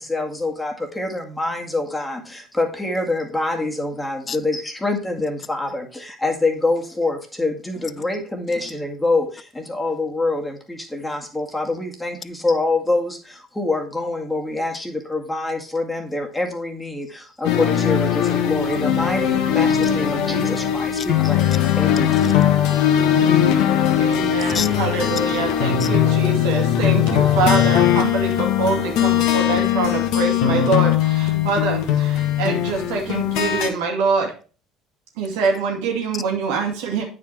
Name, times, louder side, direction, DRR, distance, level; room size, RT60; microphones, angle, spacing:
voice 1, 0.0-22.2, left 2 dB, 10° left, 2.0 m, -25 dB
voice 2, 4.3-4.4 22.1-22.3 24.4-24.7 25.8-25.9 35.2-35.3, left 6 dB, 40° left, 0.5 m, -33 dB
sound 1, 17.4-33.7, left 10 dB, 65° left, 1.3 m, -19 dB
voice 3, 24.0-34.3 35.2-37.0, right 4 dB, 75° right, 2.4 m, -24 dB
9.0 x 5.1 x 4.4 m
hypercardioid pair, 65°, 0 cm